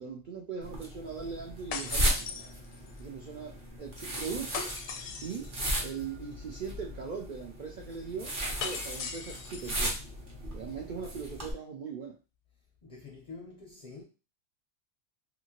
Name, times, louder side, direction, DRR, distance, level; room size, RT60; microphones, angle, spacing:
voice 1, 0.0-2.5 3.0-4.7 5.2-5.5 5.8-10.0 10.5-12.1, right 6 dB, 70° right, 0.4 m, -40 dB
sound 1, 0.6-11.5, equal, 45° right, 0.9 m, -36 dB
sound 2, 1.7-3.0 4.5-5.5 8.6-9.8, left 6 dB, 90° left, 1.0 m, -39 dB
voice 2, 12.8-14.0, left 4 dB, 45° left, 0.5 m, -47 dB
2.7 x 2.6 x 2.8 m
omnidirectional pair, 1.4 m